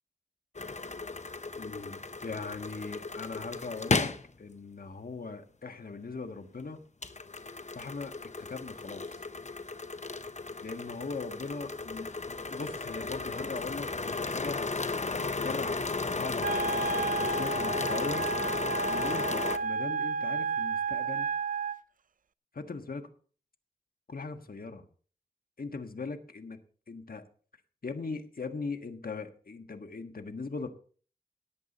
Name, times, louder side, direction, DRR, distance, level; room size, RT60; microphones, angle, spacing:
sound 1, 0.6-4.3 7.0-19.6, left 3 dB, 50° left, 0.9 m, -34 dB
voice 1, 1.5-6.8 7.7-9.1 10.6-14.7 15.4-15.8 16.1-18.3 18.8-21.3 22.5-23.1 24.1-24.8 25.6-26.6 26.9-27.2 27.8-30.7, left 4 dB, 75° left, 7 dB, 1.5 m, -40 dB
Wind instrument woodwind instrument, 16.4-21.8, right 4 dB, 60° right, 0.4 m, -32 dB
17.5 x 8.3 x 4.1 m, 0.42 s
wide cardioid pair, 50°, 15 cm